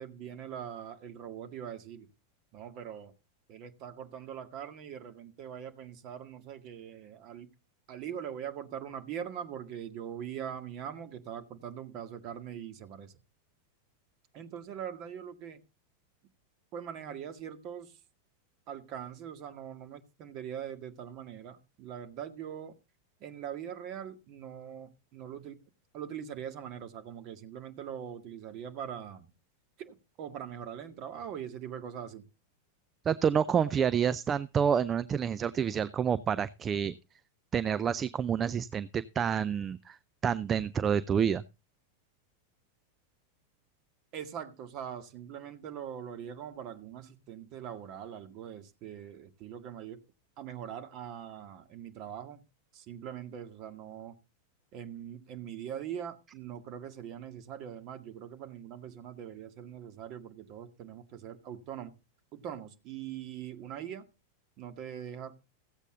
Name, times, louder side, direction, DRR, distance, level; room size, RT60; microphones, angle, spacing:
voice 1, 0.0-2.1 2.5-3.1 3.5-7.5 7.9-13.1 14.3-15.6 16.7-18.0 18.7-22.7 23.2-25.6 25.9-29.3 29.8-32.3 44.1-50.0 50.4-52.4 52.7-54.2 54.7-61.9 62.3-64.0 64.6-65.3, right 9 dB, 40° right, 1.9 m, -42 dB
voice 2, 33.1-36.9 37.5-40.0 40.2-41.4, right 7 dB, 25° right, 0.5 m, -28 dB
15.5 x 8.2 x 3.8 m
figure-of-eight pair, 90°, 0 cm